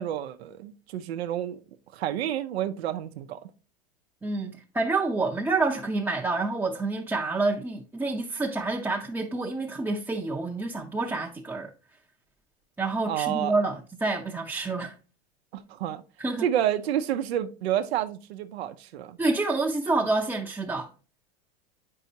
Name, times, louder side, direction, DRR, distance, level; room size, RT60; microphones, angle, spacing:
voice 1, 0.0-1.6 1.9-3.4 13.1-13.5 15.5-16.0 16.4-19.2, right 11 dB, 85° right, 0.6 m, -29 dB
voice 2, 4.2-11.7 12.8-15.0 16.2-16.5 19.2-20.9, right 3 dB, 5° right, 0.6 m, -28 dB
8.0 x 5.5 x 2.7 m
supercardioid pair, 115°, 31 cm